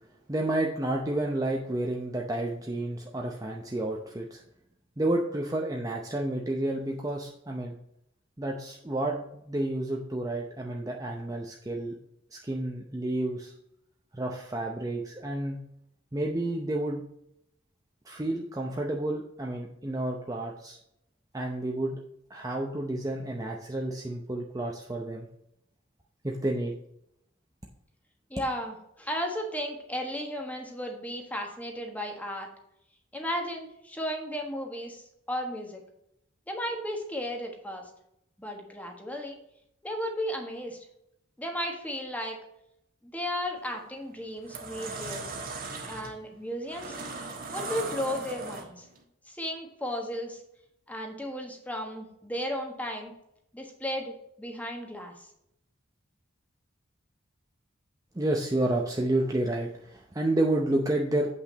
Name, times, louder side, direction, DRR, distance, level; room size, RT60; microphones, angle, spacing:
voice 1, 0.3-4.4 5.0-7.8 8.4-12.0 12.3-13.5 14.1-15.6 16.1-17.0 18.1-20.8 21.3-22.0 22.3-25.3 26.2-26.7 58.2-61.3, right 1 dB, 15° right, 0 dB, 0.7 m, -30 dB
voice 2, 28.3-32.5 33.1-35.0 35.3-35.8 36.5-37.9 38.4-39.4 39.8-40.8 41.4-42.4 43.0-45.3 45.9-47.0 47.5-48.9 49.3-50.4 50.9-53.1 53.5-55.3, equal, 10° left, 2 dB, 1.4 m, -34 dB
sound 1, 43.6-43.8 44.3-49.0, right 3 dB, 45° right, 1.3 m, -38 dB
8.1 x 5.9 x 4.0 m, 0.78 s
head